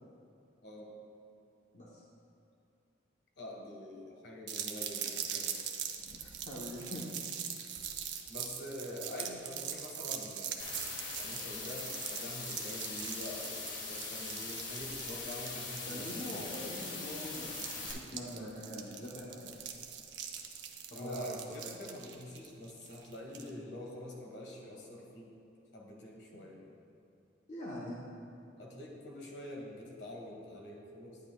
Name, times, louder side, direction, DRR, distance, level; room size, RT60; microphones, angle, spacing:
voice 1, 3.4-5.5 8.3-10.6 11.2-16.7 20.9-25.3 25.7-26.6 28.6-31.2, left 1 dB, 65° left, -2 dB, 1.4 m, -45 dB
sound 1, 4.5-23.5, right 8 dB, 70° right, 0.6 m, -42 dB
voice 2, 6.0-7.0 15.9-19.8 20.9-21.4 23.4-23.6 27.5-28.0, left 1 dB, 40° left, -6 dB, 0.9 m, -44 dB
sound 2, 10.6-17.9, left 3 dB, 85° left, 1.5 m, -41 dB
10.5 x 9.6 x 2.3 m, 2.6 s
head